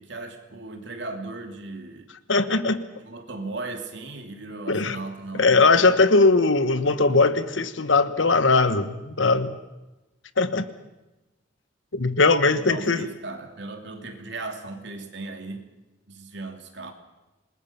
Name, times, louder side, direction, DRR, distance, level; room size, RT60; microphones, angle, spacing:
voice 1, 0.0-2.1 3.0-5.7 12.5-15.7 16.1-16.9, right 3 dB, 65° right, 5 dB, 2.7 m, -37 dB
voice 2, 2.3-2.8 4.7-5.0 5.4-9.6 10.4-10.7 11.9-13.1, left 3 dB, 85° left, 12 dB, 1.4 m, -20 dB
27.5 x 21.0 x 5.9 m, 1.0 s
head